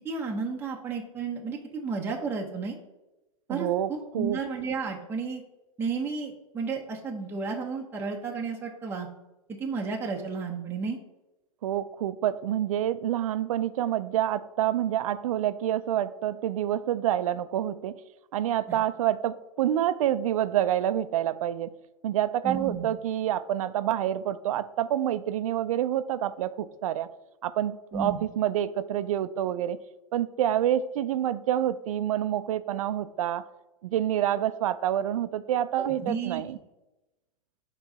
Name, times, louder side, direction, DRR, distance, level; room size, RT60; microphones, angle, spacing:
voice 1, 0.0-2.8 3.5-5.4 5.8-9.1 9.6-11.0 18.7-18.8 22.4-22.9 27.9-28.2 35.7-36.4, right 4 dB, 10° right, -1 dB, 0.7 m, -32 dB
voice 2, 3.5-4.4 11.6-18.0 18.3-21.7 22.0-27.1 27.4-29.8 30.1-33.4 33.8-36.6, right 11 dB, 70° right, 14 dB, 0.5 m, -27 dB
4.6 x 3.8 x 5.5 m, 1.0 s
hypercardioid pair, 120°, 18 cm